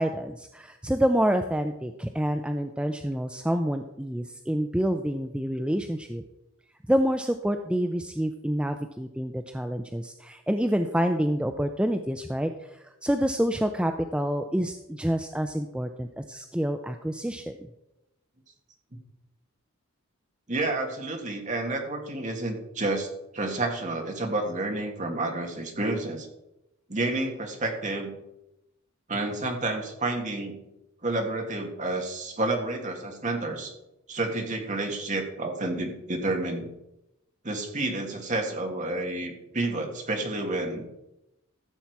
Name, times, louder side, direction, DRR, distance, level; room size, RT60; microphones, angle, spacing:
voice 1, 0.0-6.2 6.9-17.5, equal, 5° right, 6 dB, 0.4 m, -27 dB
voice 2, 20.5-23.1 23.3-26.3 26.9-28.1 29.1-30.6 31.0-33.7 34.1-36.7 37.4-40.9, right 2 dB, 35° right, 2 dB, 1.8 m, -30 dB
14.5 x 7.2 x 4.6 m, 0.90 s
head